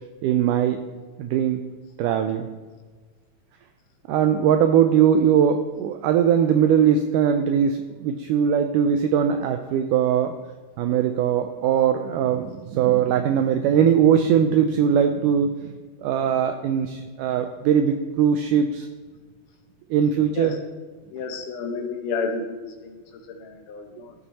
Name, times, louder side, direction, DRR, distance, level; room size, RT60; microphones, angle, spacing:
voice 1, 0.2-0.8 1.2-1.6 2.0-2.5 4.1-10.4 10.8-15.7 16.0-18.9 19.9-20.6, right 8 dB, 90° right, 7 dB, 1.8 m, -20 dB
voice 2, 21.1-24.1, left 4 dB, 75° left, 5 dB, 2.2 m, -31 dB
13.5 x 5.8 x 4.1 m, 1.4 s
omnidirectional pair, 4.2 m